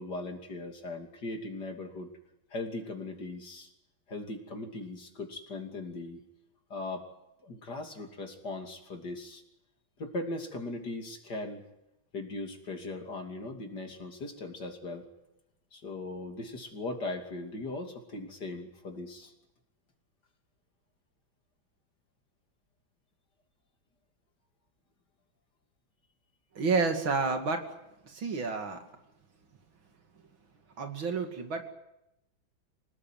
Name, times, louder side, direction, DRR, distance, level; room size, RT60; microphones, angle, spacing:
voice 1, 0.0-2.1 2.5-3.7 4.1-6.2 6.7-7.1 7.4-9.4 10.0-11.6 12.1-15.0 15.7-19.3, left 2 dB, 55° left, 4 dB, 3.4 m, -39 dB
voice 2, 26.5-27.6 28.1-28.8 30.8-31.7, right 4 dB, 80° right, 5 dB, 3.2 m, -30 dB
26.5 x 18.5 x 9.2 m, 0.89 s
omnidirectional pair, 2.1 m